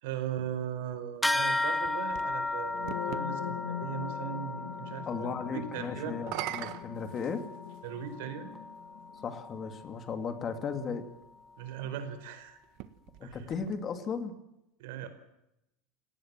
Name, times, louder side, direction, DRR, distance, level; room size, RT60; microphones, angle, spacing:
voice 1, 0.0-6.2 7.8-8.5 11.6-12.6 13.2-13.4 14.8-15.1, right 9 dB, 75° right, 9 dB, 4.8 m, -38 dB
sound 1, 1.2-11.0, left 2 dB, ahead, 1.1 m, -36 dB
sound 2, 1.6-3.3 6.1-7.9 8.8-8.9 12.6-14.2, right 16 dB, 50° right, 1.6 m, -42 dB
sound 3, 2.6-10.5, left 9 dB, 80° left, 3.1 m, -43 dB
voice 2, 5.1-7.4 9.2-11.1 13.2-14.3, left 5 dB, 25° left, 9 dB, 2.6 m, -36 dB
29.5 x 19.0 x 7.6 m, 0.85 s
cardioid pair, 170°, 0 cm